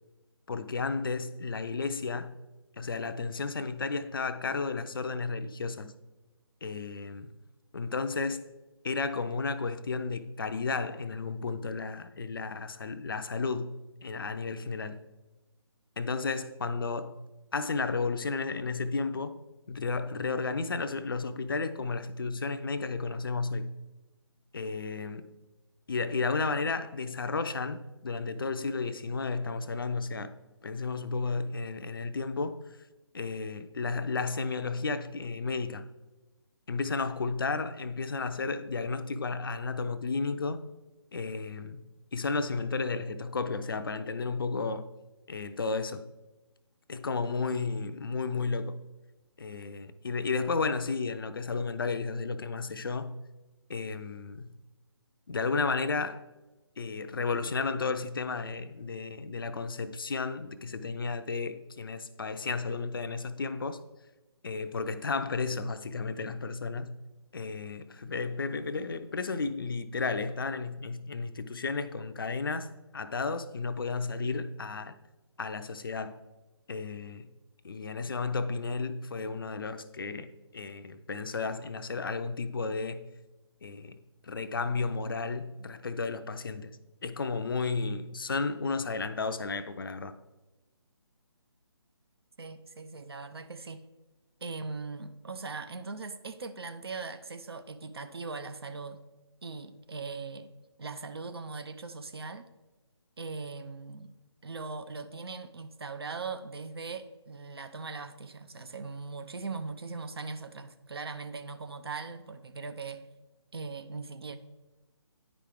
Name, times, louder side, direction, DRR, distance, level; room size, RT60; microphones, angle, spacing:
voice 1, 0.5-2.4 2.8-6.0 6.6-7.3 7.7-8.4 8.8-15.1 16.0-17.2 17.5-19.4 19.7-23.7 24.5-25.3 25.9-30.3 30.6-32.6 33.1-35.9 36.7-40.6 41.1-44.9 45.3-46.1 46.9-48.8 49.4-53.2 53.7-54.5 55.3-56.2 56.8-63.8 64.4-67.0 67.3-75.0 75.4-76.2 76.7-77.3 77.6-83.1 83.6-84.0 84.2-90.2, left 4 dB, 50° left, 0.5 m, -33 dB
voice 2, 92.4-93.9 94.4-99.0 99.4-100.5 100.8-102.5 103.2-104.1 104.4-113.1 113.5-114.4, right 4 dB, 60° right, 0.6 m, -40 dB
9.9 x 4.9 x 3.7 m
figure-of-eight pair, 145°, 15 cm